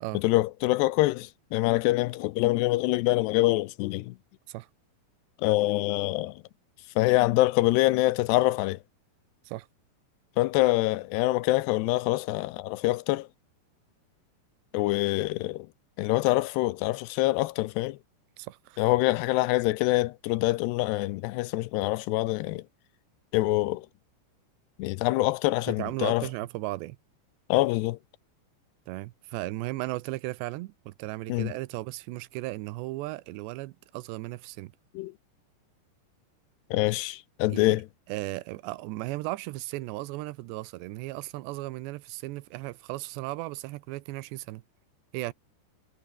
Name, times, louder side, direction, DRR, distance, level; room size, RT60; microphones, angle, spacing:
voice 1, 0.1-4.2 5.4-6.4 7.0-8.8 10.4-13.3 14.7-15.7 16.0-18.0 18.8-22.6 23.3-23.9 24.8-26.3 27.5-28.0 31.3-31.5 35.0-35.1 36.7-37.9, left 19 dB, 80° left, 2.7 m, -25 dB
voice 2, 18.4-18.8 25.7-27.0 28.9-34.7 37.5-37.8 38.1-44.6 45.1-45.3, right 19 dB, 90° right, 2.9 m, -36 dB
omnidirectional pair, 5.0 m